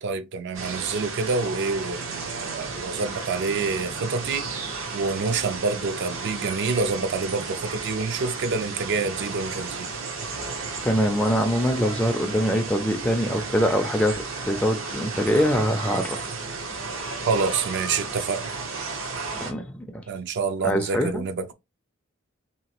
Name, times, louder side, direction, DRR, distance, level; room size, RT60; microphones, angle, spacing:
voice 1, 0.0-4.5 4.9-9.9 17.3-18.4 20.1-21.5, right 4 dB, 60° right, 0.4 m, -27 dB
sound 1, 0.5-19.5, right 4 dB, 75° right, 0.8 m, -33 dB
voice 2, 10.8-16.3 19.3-20.0 20.6-21.2, equal, 5° left, 0.3 m, -24 dB
2.9 x 2.3 x 2.9 m
head